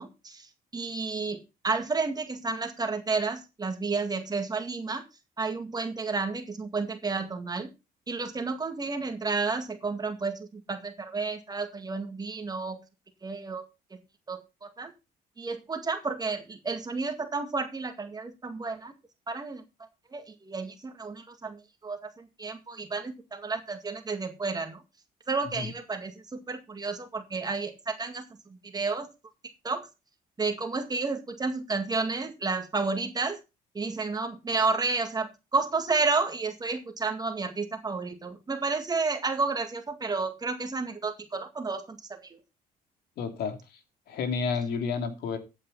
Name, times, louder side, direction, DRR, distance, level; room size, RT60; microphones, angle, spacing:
voice 1, 0.0-5.0 5.4-7.7 8.1-12.8 13.2-13.6 14.3-14.9 15.4-18.9 19.3-19.6 20.1-24.8 25.3-26.1 26.5-28.2 28.6-29.1 29.6-29.9 30.4-33.4 33.7-42.4, right 4 dB, 25° right, 6 dB, 1.9 m, -31 dB
voice 2, 43.2-43.8 44.1-45.4, left 5 dB, 70° left, 7 dB, 3.0 m, -31 dB
14.0 x 8.8 x 4.1 m, 0.28 s
cardioid pair, 110°, 17 cm